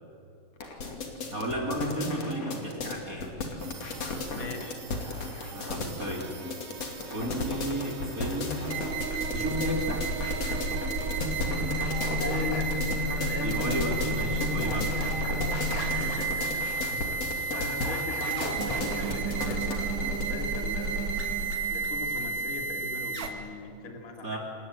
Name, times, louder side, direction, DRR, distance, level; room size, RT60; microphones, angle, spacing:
sound 1, 0.6-20.2, left 3 dB, 40° left, 3.3 m, -35 dB
voice 1, 1.3-3.3 5.5-6.3 7.1-8.7 9.3-10.1 13.4-15.3 16.7-17.0 24.2-24.4, right 1 dB, 20° right, 0 dB, 3.5 m, -33 dB
sound 2, 3.6-23.3, right 3 dB, 70° right, 4.1 m, -32 dB
voice 2, 4.3-4.8 12.2-13.8 15.7-17.0 17.5-21.1 21.7-24.4, left 3 dB, 25° left, 2 dB, 2.4 m, -39 dB
28.0 x 19.5 x 9.3 m, 2.7 s
omnidirectional pair, 5.1 m